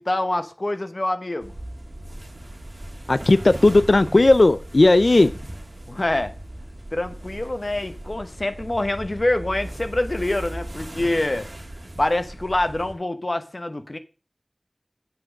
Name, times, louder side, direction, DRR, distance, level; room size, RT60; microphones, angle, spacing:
voice 1, 0.0-1.5 5.9-6.3 6.9-11.5 12.0-14.0, left 1 dB, 60° left, 1.0 m, -25 dB
sound 1, 1.4-12.9, right 1 dB, 70° right, 1.5 m, -37 dB
voice 2, 3.1-5.3, left 2 dB, 85° left, 0.4 m, -15 dB
7.6 x 6.2 x 6.3 m
wide cardioid pair, 40°, 0 cm